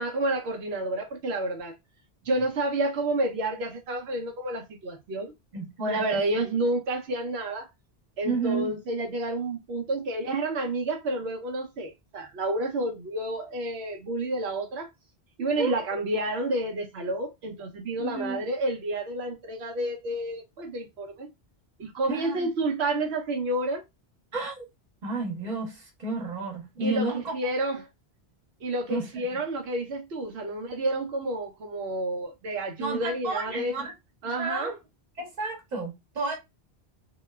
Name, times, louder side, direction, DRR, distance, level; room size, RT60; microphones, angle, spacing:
voice 1, 0.0-1.7 2.2-5.3 5.9-7.7 8.2-14.9 15.4-21.3 21.8-23.8 26.8-27.9 28.6-33.7 34.2-34.7, right 2 dB, 80° right, 0.9 m, -30 dB
voice 2, 5.5-6.2 8.2-8.8 15.5-15.8 18.0-18.4 22.1-22.5 24.3-24.7 25.0-27.4 28.9-29.1 32.8-33.9 34.4-34.8 35.2-36.4, right 3 dB, 45° right, 1.1 m, -31 dB
2.9 x 2.1 x 2.2 m
omnidirectional pair, 1.1 m